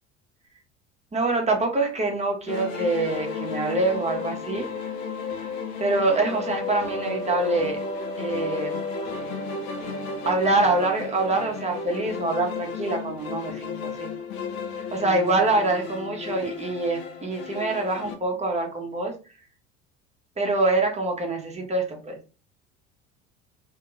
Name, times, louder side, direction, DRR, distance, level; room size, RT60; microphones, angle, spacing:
voice 1, 1.1-4.7 5.8-7.8 8.2-8.8 10.2-14.1 14.9-19.1 20.4-22.2, right 2 dB, 15° right, 2 dB, 0.9 m, -25 dB
sound 1, 2.5-18.2, left 4 dB, 55° left, 0.7 m, -33 dB
2.8 x 2.8 x 2.4 m, 0.33 s
figure-of-eight pair, 65°, 38 cm